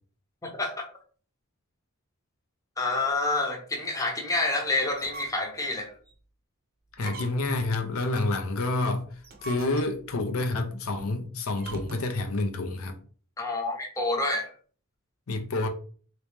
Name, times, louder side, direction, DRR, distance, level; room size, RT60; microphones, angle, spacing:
voice 1, 0.4-0.8 2.8-5.9 13.4-14.5, left 2 dB, 15° left, 0.7 m, -28 dB
sound 1, 4.9-5.6 6.1-6.2 6.9-7.6 9.1-10.1 11.5-12.2, right 4 dB, 45° right, 0.6 m, -43 dB
voice 2, 7.0-9.0 9.4-12.9 15.3-15.7, left 2 dB, 75° left, 0.6 m, -28 dB
3.1 x 2.9 x 3.3 m
head